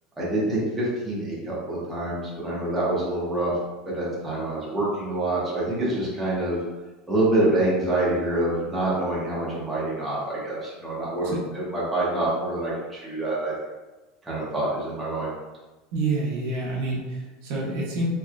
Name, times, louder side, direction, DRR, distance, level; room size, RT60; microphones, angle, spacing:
voice 1, 0.2-3.5 3.9-6.6 7.1-13.5 14.2-15.3, right 1 dB, 10° right, -8 dB, 0.9 m, -26 dB
voice 2, 15.9-18.1, right 2 dB, 60° right, -3 dB, 0.9 m, -28 dB
3.2 x 3.1 x 2.4 m, 1.1 s
supercardioid pair, 160°, 0 cm